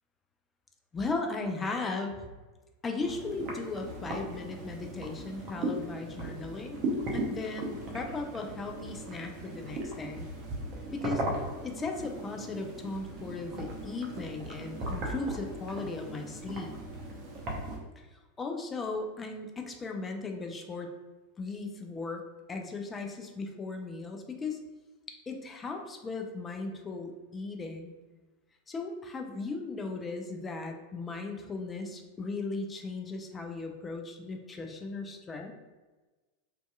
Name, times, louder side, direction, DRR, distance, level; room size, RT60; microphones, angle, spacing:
voice 1, 0.9-2.3 2.8-6.8 7.1-10.3 10.9-11.2 11.6-16.7 18.0-18.1 18.4-20.9 21.4-22.2 22.5-24.6 25.1-27.9 28.7-35.5, left 3 dB, 20° left, 3 dB, 0.4 m, -37 dB
sound 1, 3.0-17.8, right 1 dB, 40° right, 0.6 m, -38 dB
2.6 x 2.3 x 2.2 m, 1.2 s
figure-of-eight pair, 90°, 0 cm